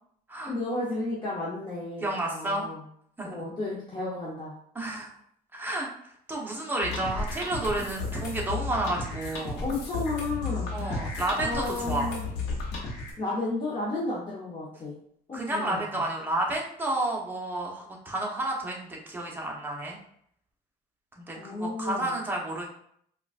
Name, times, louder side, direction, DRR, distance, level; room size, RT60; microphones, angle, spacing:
voice 1, 0.5-2.8 3.2-4.5 9.6-10.7 11.4-12.2 13.2-14.9 15.3-15.8 21.3-22.1, left 2 dB, 30° left, -6 dB, 0.8 m, -32 dB
voice 2, 2.0-2.7 3.2-3.4 4.7-5.1 5.5-9.6 10.7-12.1 15.3-20.0 21.2-22.7, right 1 dB, 10° right, -2 dB, 0.8 m, -31 dB
sound 1, 6.8-13.1, left 3 dB, 85° left, 1.0 m, -33 dB
3.8 x 2.3 x 2.4 m, 0.67 s
cardioid pair, 110°, 17 cm